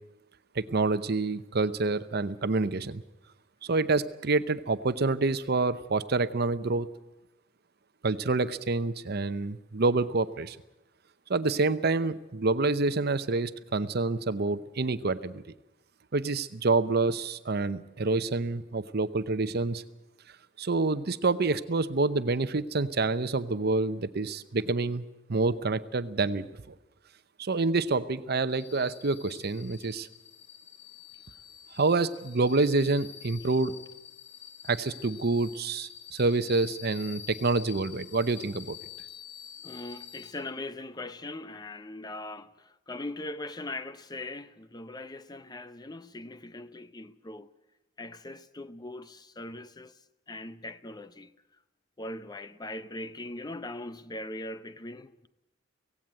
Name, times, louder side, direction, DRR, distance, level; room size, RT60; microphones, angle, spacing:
voice 1, 0.6-3.0 3.6-6.9 8.0-10.6 11.3-15.4 16.1-19.8 20.6-26.5 27.4-30.1 31.8-33.8 34.7-38.8, right 3 dB, 55° right, 0.8 m, -27 dB
sound 1, 28.5-40.3, left 10 dB, 90° left, 3.4 m, -47 dB
voice 2, 39.6-47.5 48.0-49.9 50.3-51.3 52.0-55.3, left 2 dB, 20° left, 0.7 m, -40 dB
17.0 x 16.5 x 9.4 m
head